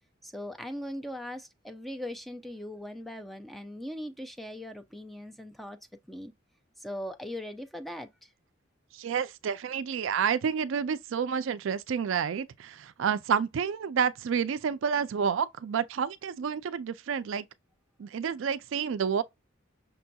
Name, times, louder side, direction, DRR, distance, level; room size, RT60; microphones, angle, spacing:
voice 1, 0.2-5.8 6.1-6.3 6.8-8.3, left 1 dB, ahead, 0.4 m, -40 dB
voice 2, 8.9-17.4 18.0-19.2, right 7 dB, 70° right, 0.4 m, -29 dB
5.9 x 2.7 x 2.3 m
head